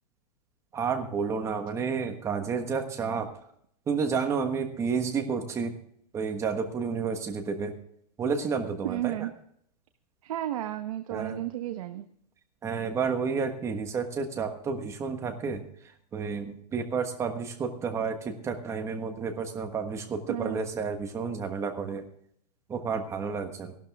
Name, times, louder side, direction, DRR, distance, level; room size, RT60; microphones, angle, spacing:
voice 1, 0.7-3.3 3.9-5.7 6.1-7.7 8.2-9.3 11.1-11.4 12.6-22.0 22.7-23.7, right 5 dB, 15° right, 6 dB, 1.3 m, -31 dB
voice 2, 8.8-9.3 10.2-12.1 20.3-20.7, right 13 dB, 55° right, 7 dB, 1.0 m, -33 dB
16.5 x 12.0 x 3.5 m, 0.68 s
hypercardioid pair, 160°, 21 cm